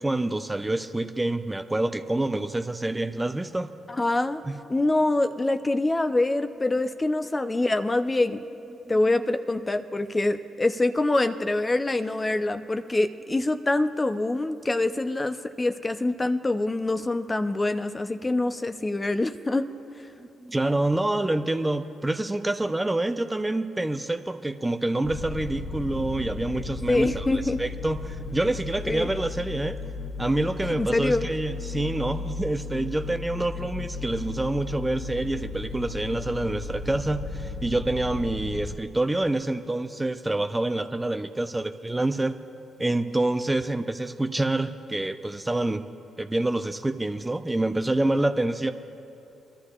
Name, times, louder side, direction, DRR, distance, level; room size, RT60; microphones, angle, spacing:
voice 1, 0.0-3.7 4.4-4.5 20.2-27.3 27.6-29.8 30.2-42.4 42.8-45.8 46.2-48.7, right 2 dB, 15° right, 8 dB, 0.6 m, -27 dB
voice 2, 3.9-4.4 4.7-8.4 8.9-19.7 26.9-27.6 28.8-29.1 30.8-31.3, left 2 dB, 25° left, 9 dB, 0.6 m, -25 dB
sound 1, 25.0-38.7, left 3 dB, 60° left, 0.7 m, -35 dB
24.5 x 13.0 x 2.4 m, 2.8 s
hypercardioid pair, 45°, 0 cm